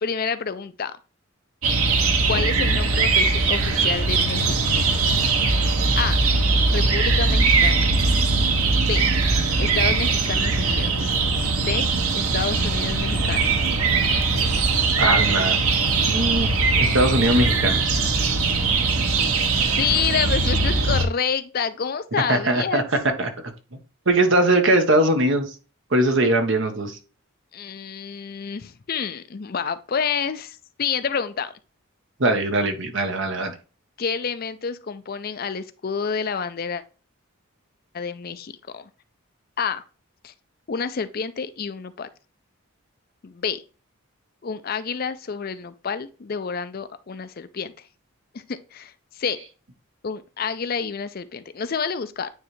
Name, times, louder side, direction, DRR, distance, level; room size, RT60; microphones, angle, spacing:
voice 1, 0.0-1.0 2.3-4.6 6.0-6.2 6.7-7.8 8.8-9.1 9.6-11.1 11.7-11.9 12.1-13.7 19.8-22.9 27.5-31.5 34.0-36.8 37.9-38.9 39.6-39.8 40.2-40.3 40.7-42.1 43.2-43.6 44.4-47.7 48.3-49.4 50.0-52.3, left 6 dB, 45° left, 0.5 m, -28 dB
sound 1, 1.6-21.1, right 3 dB, 90° right, 1.0 m, -21 dB
voice 2, 15.0-15.6 16.0-16.5 16.8-18.0 22.3-23.3 23.7-23.8 24.1-25.5 25.9-27.0 32.2-33.5, right 1 dB, 60° right, 1.1 m, -21 dB
9.2 x 3.2 x 3.2 m
head